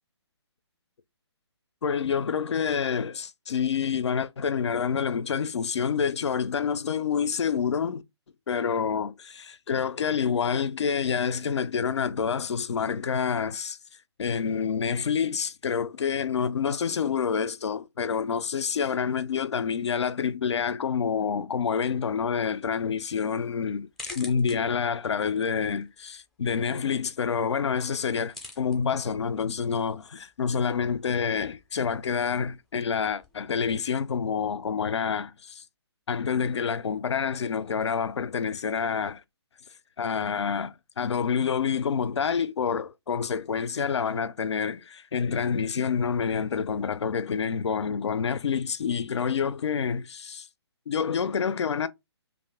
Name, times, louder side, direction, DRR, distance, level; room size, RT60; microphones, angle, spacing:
voice 1, 1.8-8.0 8.5-13.8 14.2-23.9 24.2-35.6 36.1-39.2 40.0-50.5 50.9-51.9, left 6 dB, 80° left, 0.4 m, -28 dB
sound 1, 22.1-33.4, left 3 dB, ahead, 0.4 m, -50 dB
2.5 x 2.4 x 3.4 m
hypercardioid pair, 145°, 14 cm